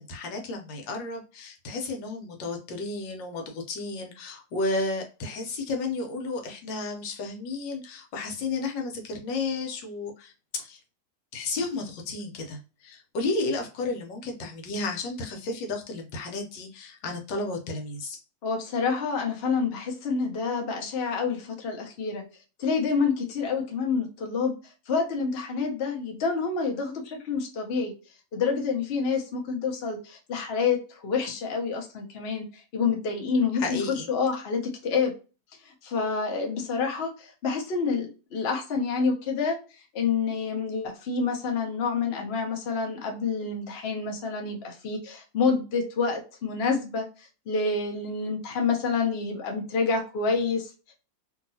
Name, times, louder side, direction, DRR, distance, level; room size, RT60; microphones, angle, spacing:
voice 1, 0.0-10.8 11.3-18.2 33.5-34.1, left 3 dB, 80° left, 3 dB, 1.5 m, -32 dB
voice 2, 18.4-22.2 22.6-24.5 24.9-27.9 28.3-32.4 32.7-33.8 34.1-35.1 35.8-39.6 39.9-47.1 47.5-50.9, left 5 dB, 50° left, 2 dB, 0.7 m, -28 dB
2.9 x 2.8 x 2.6 m, 0.33 s
omnidirectional pair, 2.0 m